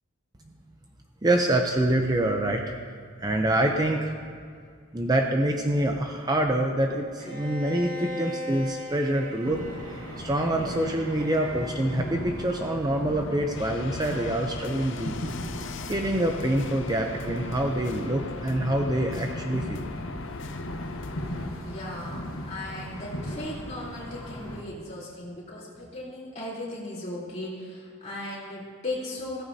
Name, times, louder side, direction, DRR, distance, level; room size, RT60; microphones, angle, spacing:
voice 1, 1.2-2.6 3.2-4.1 4.9-9.6 10.2-15.3 15.9-19.9, right 1 dB, 20° right, 2 dB, 0.6 m, -26 dB
Bowed string instrument, 7.2-11.9, equal, 80° right, 2.6 m, -39 dB
sound 1, 9.4-24.6, left 1 dB, 80° left, 1.3 m, -37 dB
sound 2, 13.6-21.5, left 3 dB, 60° left, 0.5 m, -39 dB
voice 2, 21.6-22.2 22.5-29.4, left 1 dB, 35° left, -6 dB, 3.6 m, -37 dB
16.0 x 14.5 x 2.8 m, 2.1 s
head